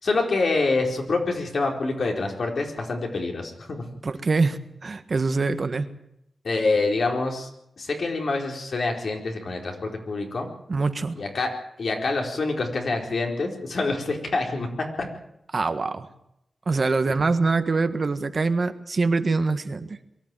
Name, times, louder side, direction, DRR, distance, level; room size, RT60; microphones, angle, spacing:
voice 1, 0.0-3.8 6.4-7.5 7.8-10.5 11.1-11.5 11.8-14.7 15.0-15.1, left 3 dB, 70° left, 2 dB, 4.4 m, -26 dB
voice 2, 4.0-5.9 10.7-11.1 15.5-16.1 16.6-20.0, right 3 dB, 50° right, 9 dB, 1.6 m, -24 dB
23.0 x 14.0 x 9.2 m, 0.81 s
wide cardioid pair, 90°, 0 cm